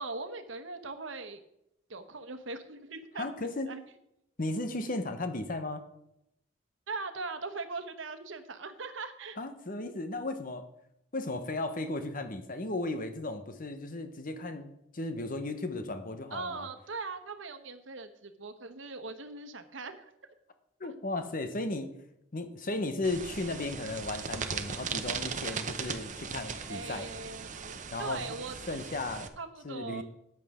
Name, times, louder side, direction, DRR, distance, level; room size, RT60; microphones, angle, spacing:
voice 1, 0.0-1.4 1.9-3.8 6.9-9.4 16.3-20.0 20.8-20.9 26.7-28.5 29.4-30.0, right 3 dB, 75° right, 9 dB, 1.1 m, -40 dB
voice 2, 3.2-3.7 4.4-5.8 9.4-10.7 11.1-16.7 20.8-21.9 22.3-27.1 27.9-28.2 28.7-29.3 29.6-30.0, left 2 dB, 45° left, 8 dB, 1.1 m, -35 dB
sound 1, 23.0-29.3, right 6 dB, 40° right, 0.9 m, -38 dB
13.5 x 9.2 x 3.7 m, 0.82 s
head